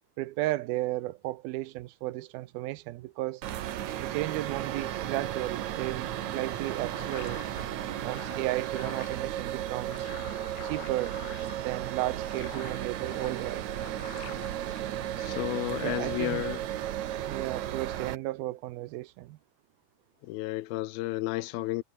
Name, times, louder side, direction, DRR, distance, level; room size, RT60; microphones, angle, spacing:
voice 1, 0.2-3.4 4.0-7.5 8.0-10.1 10.6-11.2 11.6-13.6 15.8-16.4 17.3-19.4, right 17 dB, 85° right, 2.7 m, -34 dB
sound 1, 3.4-18.2, right 12 dB, 60° right, 2.3 m, -34 dB
sound 2, 6.1-15.4, left 11 dB, 65° left, 3.0 m, -48 dB
voice 2, 15.2-16.6 20.2-21.8, left 18 dB, 85° left, 2.6 m, -32 dB
omnidirectional pair, 4.2 m